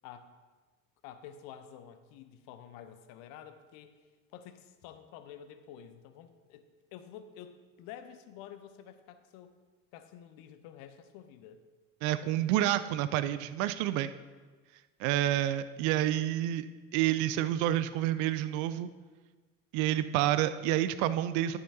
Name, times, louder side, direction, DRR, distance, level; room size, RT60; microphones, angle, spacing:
voice 1, 1.0-4.0 4.3-9.5 9.9-11.6, left 9 dB, 50° left, 10 dB, 0.9 m, -50 dB
voice 2, 12.0-14.1 15.0-16.7 16.9-18.9 19.7-21.6, right 13 dB, 45° right, 13 dB, 0.5 m, -29 dB
11.5 x 9.4 x 2.8 m, 1.4 s
figure-of-eight pair, 65°, 42 cm